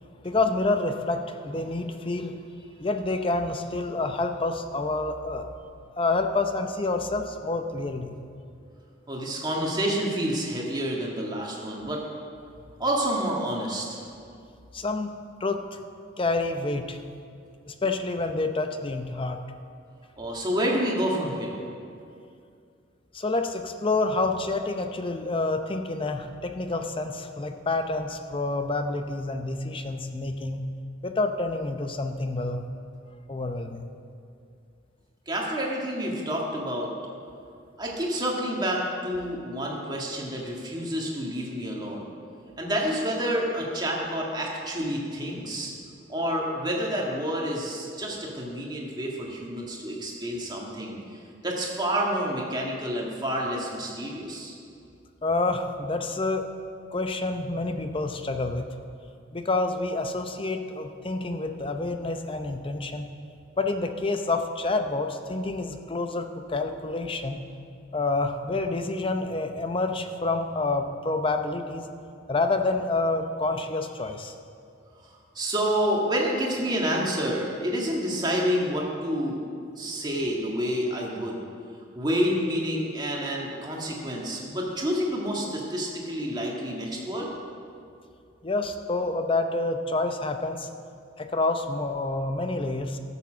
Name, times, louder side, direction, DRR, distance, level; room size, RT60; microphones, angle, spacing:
voice 1, 0.2-2.4 2.8-5.5 6.0-8.2 14.7-15.1 15.4-15.8 16.2-17.0 17.7-19.4 23.1-30.6 31.0-32.6 33.3-33.9 55.2-56.5 56.9-58.7 59.3-63.1 63.6-67.4 67.9-71.9 72.3-74.3 88.4-90.7 91.2-93.0, left 2 dB, 25° left, 6 dB, 0.6 m, -28 dB
voice 2, 9.1-12.0 12.8-14.0 20.2-21.6 35.3-36.9 37.8-42.1 42.6-45.7 46.1-51.0 51.4-54.6 75.4-79.4 79.8-81.4 81.9-87.3, equal, 20° right, -2 dB, 1.8 m, -28 dB
13.5 x 7.1 x 6.2 m, 2.4 s
head